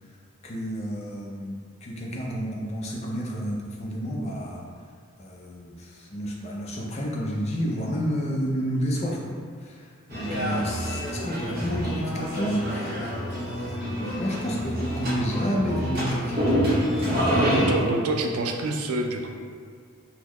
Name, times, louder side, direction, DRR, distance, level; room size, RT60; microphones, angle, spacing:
voice 1, 0.4-4.6 5.2-9.3 9.6-16.5 17.2-17.7, equal, 30° left, -2 dB, 0.4 m, -30 dB
sound 1, 10.1-17.7, equal, 45° right, 0.8 m, -27 dB
voice 2, 17.3-19.3, right 2 dB, 85° right, 3 dB, 0.4 m, -27 dB
3.7 x 2.1 x 3.0 m, 2.1 s
head